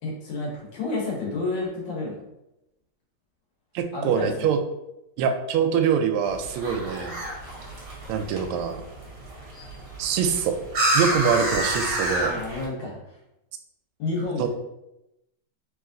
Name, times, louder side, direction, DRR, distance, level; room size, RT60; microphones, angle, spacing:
voice 1, 0.0-2.3 3.9-4.6 12.2-13.2 14.0-14.5, left 2 dB, 65° left, -3 dB, 1.7 m, -30 dB
voice 2, 3.7-4.6 5.2-7.2 8.1-8.8 10.0-10.5 10.9-12.4 14.4-14.5, right 7 dB, 90° right, 6 dB, 1.5 m, -24 dB
sound 1, 6.2-12.7, right 1 dB, 50° right, 1.1 m, -29 dB
3.5 x 3.1 x 3.7 m, 0.89 s
omnidirectional pair, 2.3 m